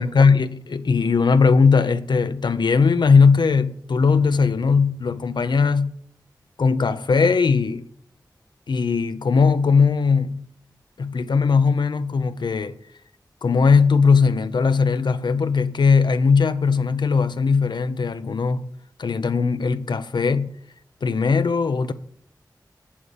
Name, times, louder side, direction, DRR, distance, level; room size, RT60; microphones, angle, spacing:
voice 1, 0.0-5.9 6.6-7.9 8.7-10.4 11.0-12.8 13.4-18.6 19.0-20.5 21.0-21.9, left 5 dB, 80° left, 0.6 m, -19 dB
8.6 x 7.2 x 6.7 m
wide cardioid pair, 60°, 7 cm